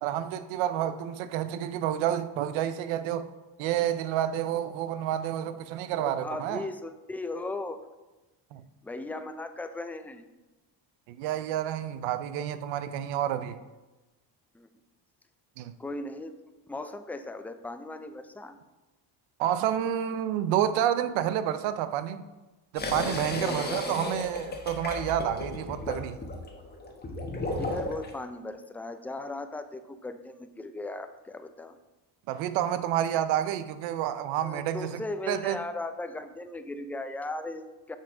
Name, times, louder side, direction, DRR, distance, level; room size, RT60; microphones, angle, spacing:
voice 1, 0.0-3.3 3.6-6.7 8.5-8.6 11.1-13.6 15.6-15.7 19.4-22.2 22.7-26.2 32.3-35.0 35.3-35.6, right 11 dB, 90° right, 11 dB, 0.6 m, -29 dB
voice 2, 5.9-7.8 8.8-10.2 14.5-14.7 15.8-16.3 16.7-18.6 23.4-24.0 27.6-31.8 34.4-38.0, left 2 dB, 5° left, 9 dB, 0.3 m, -37 dB
sound 1, 22.8-28.1, left 2 dB, 20° left, 1.2 m, -34 dB
5.8 x 5.7 x 4.9 m, 1.1 s
cardioid pair, 95°, 45 cm